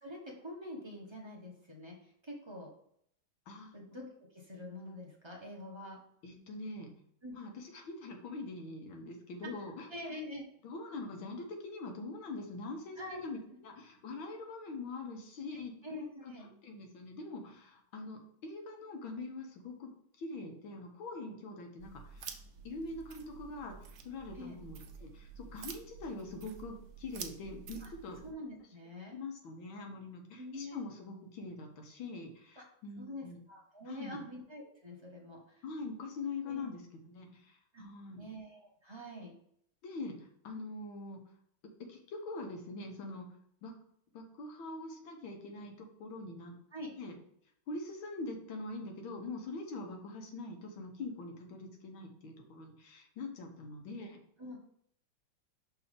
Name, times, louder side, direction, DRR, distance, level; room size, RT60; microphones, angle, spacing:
voice 1, 0.0-2.7 3.7-4.0 4.3-6.0 7.2-7.4 9.9-10.4 13.0-13.2 15.5-16.5 24.3-24.6 27.8-27.9 28.2-29.1 30.4-30.8 32.6-32.7 33.0-35.6 36.4-36.7 37.7-37.8 38.2-39.3 46.7-46.9 54.4-54.6, left 1 dB, 25° right, -1 dB, 0.6 m, -45 dB
voice 2, 6.2-6.9 7.3-9.9 10.6-15.7 16.2-16.3 16.6-19.9 20.2-22.4 22.6-23.7 24.0-28.2 29.1-33.4 33.9-34.2 35.6-38.3 39.8-41.2 41.9-43.3 43.6-43.7 44.1-46.5 47.0-47.1 47.7-54.2, left 3 dB, 75° left, 3 dB, 1.8 m, -43 dB
sound 1, 21.8-28.3, right 7 dB, 70° right, 0.9 m, -49 dB
6.0 x 3.4 x 5.1 m, 0.69 s
omnidirectional pair, 2.3 m